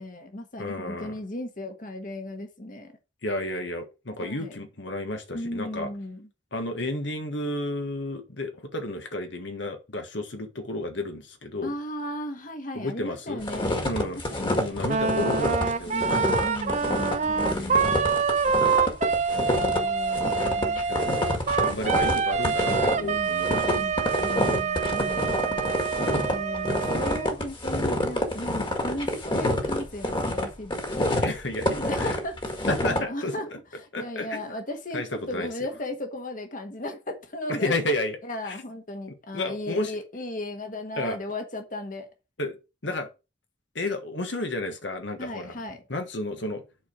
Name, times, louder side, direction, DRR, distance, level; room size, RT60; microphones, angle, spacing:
voice 1, 0.0-2.9 4.2-4.6 5.3-6.3 11.6-13.8 14.3-14.6 15.9-18.0 19.5-20.8 23.0-25.7 26.3-31.1 31.9-33.5 33.7-37.8 38.2-42.1 45.2-45.8, left 1 dB, 45° left, 1.5 m, -36 dB
voice 2, 0.6-1.2 3.2-5.9 6.5-11.7 12.7-13.4 13.8-14.2 14.6-16.3 17.3-18.1 20.9-21.1 21.6-23.9 24.3-24.4 31.2-32.2 32.7-33.3 33.9-34.5 34.9-35.5 37.5-38.2 38.4-38.6 39.3-39.9 41.0-41.2 42.4-42.6 42.8-43.1 43.7-45.5 45.9-46.6, left 1 dB, 80° left, 1.5 m, -32 dB
sound 1, 13.4-33.0, left 1 dB, 25° left, 1.8 m, -27 dB
Wind instrument woodwind instrument, 14.9-27.3, right 5 dB, 40° right, 0.6 m, -26 dB
8.1 x 4.5 x 6.0 m
head